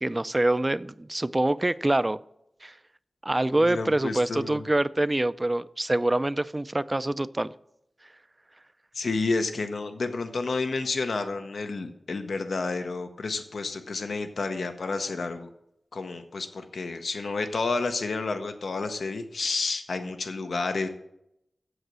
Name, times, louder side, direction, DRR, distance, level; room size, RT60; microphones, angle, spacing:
voice 1, 0.0-2.2 2.6-2.7 3.2-7.5, right 1 dB, 20° right, 16 dB, 0.3 m, -25 dB
voice 2, 3.6-4.6 8.9-15.5 15.9-20.9, left 3 dB, 80° left, 7 dB, 0.8 m, -30 dB
8.0 x 7.7 x 6.1 m, 0.80 s
wide cardioid pair, 105°, 0 cm